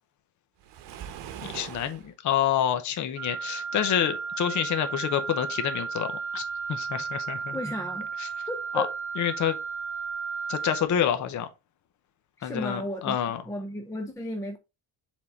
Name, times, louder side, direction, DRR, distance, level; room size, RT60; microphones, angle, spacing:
Waves surf, 0.6-2.1, right 10 dB, 85° right, 1.0 m, -41 dB
voice 1, 1.4-6.4 6.7-7.6 8.7-8.9 9.2-9.6 10.5-11.5 12.4-13.4, left 10 dB, 45° left, 0.8 m, -27 dB
Wind instrument woodwind instrument, 3.2-10.9, right 5 dB, 30° right, 1.4 m, -34 dB
voice 2, 7.5-8.1 8.5-8.9 12.4-13.2 13.4-14.6, equal, 10° left, 0.5 m, -34 dB
7.3 x 3.7 x 4.0 m
cardioid pair, 165°, 42 cm